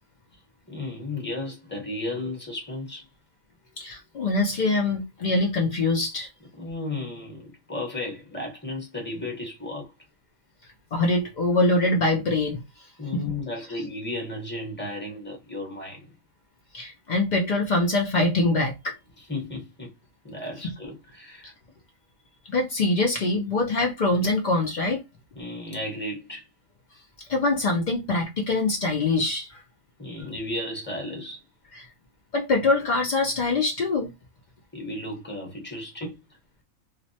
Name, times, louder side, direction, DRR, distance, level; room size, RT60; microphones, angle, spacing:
voice 1, 0.7-3.1 6.6-9.9 13.0-16.1 19.2-19.9 20.2-21.5 25.4-26.4 30.0-31.4 34.7-36.2, left 2 dB, 10° left, 0.7 m, -34 dB
voice 2, 3.8-6.3 10.9-12.6 13.1-13.2 16.7-19.0 22.5-25.0 27.2-29.6 31.7-31.9 32.3-34.1, left 2 dB, 90° left, 0.4 m, -24 dB
2.4 x 2.1 x 2.6 m
omnidirectional pair, 1.4 m